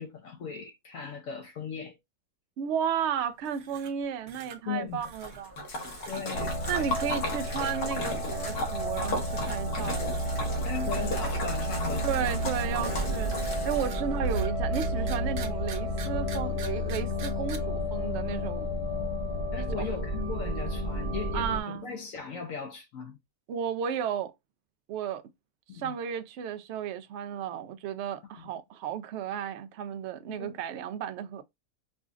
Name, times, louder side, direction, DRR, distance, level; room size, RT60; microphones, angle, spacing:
voice 1, 0.0-2.0 4.7-5.0 6.1-6.9 10.6-12.0 12.8-13.2 19.5-23.2 25.7-25.9 28.4-28.5 30.3-30.6, left 6 dB, 65° left, 1.0 m, -38 dB
voice 2, 2.6-5.6 6.7-10.2 12.0-13.3 13.6-18.7 19.8-19.9 21.3-21.9 23.5-24.3 24.9-25.2 25.7-31.4, right 8 dB, 65° right, 0.7 m, -33 dB
sound 1, 3.4-4.0 4.3-4.6 5.0-5.4 5.8-6.2 6.6-7.2 7.5-7.8 8.3-8.6 9.1-9.6 9.9-10.4 10.7-11.7 12.1-17.6, right 6 dB, 80° right, 1.3 m, -46 dB
Splash splatter, 5.0-14.1, left 1 dB, 85° left, 1.8 m, -36 dB
sound 2, 6.3-21.6, equal, 25° left, 1.1 m, -31 dB
4.9 x 2.4 x 2.4 m
omnidirectional pair, 1.6 m